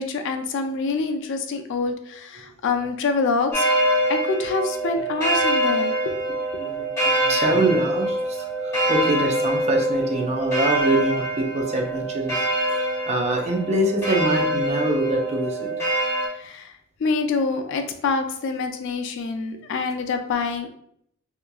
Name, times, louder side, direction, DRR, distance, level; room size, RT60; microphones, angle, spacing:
voice 1, 0.0-3.7 4.1-6.2 6.5-6.6 16.4-16.7 17.0-20.7, left 4 dB, 60° left, 6 dB, 0.3 m, -26 dB
sound 1, 3.5-16.3, right 1 dB, 15° left, 1.1 m, -24 dB
voice 2, 6.6-15.7, right 1 dB, 30° right, 1 dB, 0.5 m, -25 dB
2.8 x 2.4 x 2.2 m, 0.71 s
head